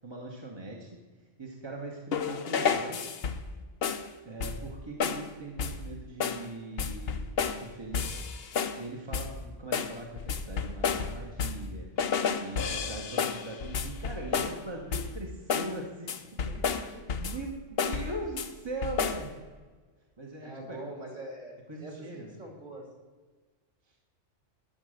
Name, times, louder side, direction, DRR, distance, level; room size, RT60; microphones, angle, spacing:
voice 1, 0.0-1.0 1.4-3.0 4.2-8.2 8.8-9.3 9.6-11.9 12.3-16.1 16.4-16.5 16.8-19.3 20.2-20.8 21.7-22.4, right 2 dB, 20° right, -1 dB, 1.3 m, -40 dB
sound 1, 2.1-3.5 3.8-4.1 4.4-4.7 5.0-5.3 5.6-5.9 6.2-6.5 6.8-7.7 7.9-8.8 9.1-9.4 9.7-11.7 12.0-14.6 14.9-15.2 15.5-15.8 16.1-17.5 17.8-18.5 18.8-19.3, left 6 dB, 55° left, 0.9 m, -31 dB
voice 2, 20.4-21.5 21.8-22.9, right 1 dB, 40° right, 0 dB, 3.0 m, -43 dB
12.0 x 7.0 x 6.5 m, 1.4 s
omnidirectional pair, 1.3 m